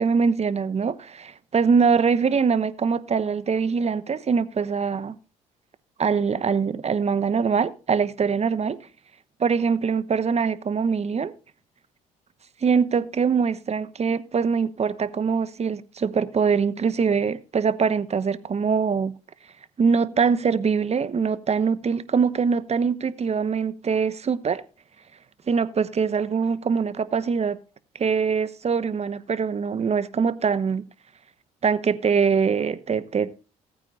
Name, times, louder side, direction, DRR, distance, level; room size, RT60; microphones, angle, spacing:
voice 1, 0.0-5.1 6.0-8.8 9.4-11.3 12.6-19.1 19.8-24.6 25.5-27.6 28.0-30.8 31.6-33.3, right 6 dB, 40° right, 1.1 m, -23 dB
18.0 x 9.2 x 2.5 m
hypercardioid pair, 55°, 18 cm